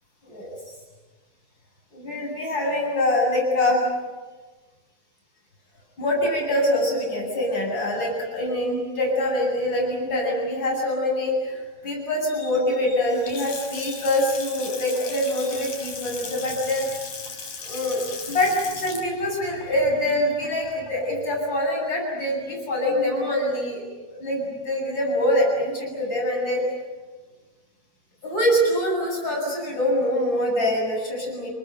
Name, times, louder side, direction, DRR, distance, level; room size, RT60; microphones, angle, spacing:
voice 1, 1.9-3.8 6.0-16.8 17.6-26.6 28.2-31.5, left 1 dB, 30° left, -1 dB, 8.7 m, -24 dB
Water tap faucet / Sink (filling or washing) / Splash splatter, 13.0-21.1, left 5 dB, 50° left, 5.0 m, -37 dB
30.0 x 20.0 x 9.4 m, 1.3 s
omnidirectional pair, 4.4 m